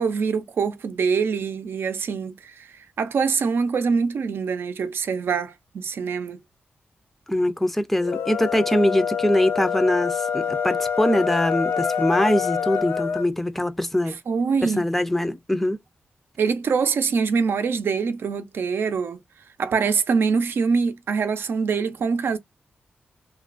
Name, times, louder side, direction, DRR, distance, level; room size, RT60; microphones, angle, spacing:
voice 1, 0.0-2.7 3.0-6.4 14.3-14.8 16.4-19.2 19.6-22.4, right 5 dB, 70° right, 0.5 m, -24 dB
voice 2, 7.3-14.2 14.6-15.8, left 1 dB, 5° left, 0.4 m, -23 dB
sound 1, 8.0-13.3, left 7 dB, 75° left, 0.5 m, -26 dB
2.9 x 2.3 x 2.4 m
cardioid pair, 75°, 4 cm